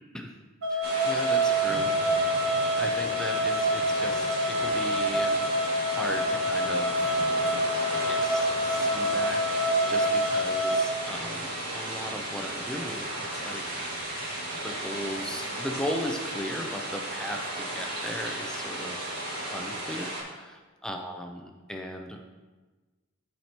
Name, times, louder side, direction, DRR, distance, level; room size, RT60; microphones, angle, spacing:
sound 1, 0.6-10.9, equal, 75° right, 1.2 m, -26 dB
voice 1, 0.7-2.0 2.8-5.4 5.9-7.2 7.9-13.6 14.6-19.1 19.5-22.2, equal, 5° left, 2 dB, 0.5 m, -37 dB
sound 2, 0.8-20.2, right 1 dB, 45° right, 1.9 m, -34 dB
12.5 x 4.4 x 2.9 m, 1.3 s
head